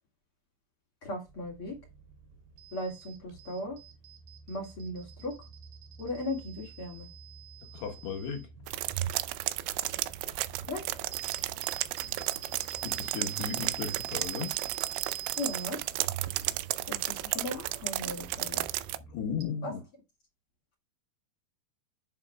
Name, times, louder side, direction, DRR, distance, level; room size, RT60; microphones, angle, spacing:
voice 1, 1.0-1.8 2.7-3.8 4.5-5.3 6.0-7.1 10.7-10.8 15.4-15.8 16.9-18.6 19.6-19.7, left 1 dB, 45° left, 1.9 m, -37 dB
sound 1, 1.3-19.5, right 10 dB, 70° right, 4.5 m, -46 dB
voice 2, 7.7-8.5 12.8-14.6 19.1-19.8, left 7 dB, 70° left, 3.1 m, -36 dB
sound 2, 8.7-19.0, right 16 dB, 85° right, 2.9 m, -33 dB
11.0 x 6.7 x 2.3 m
omnidirectional pair, 5.2 m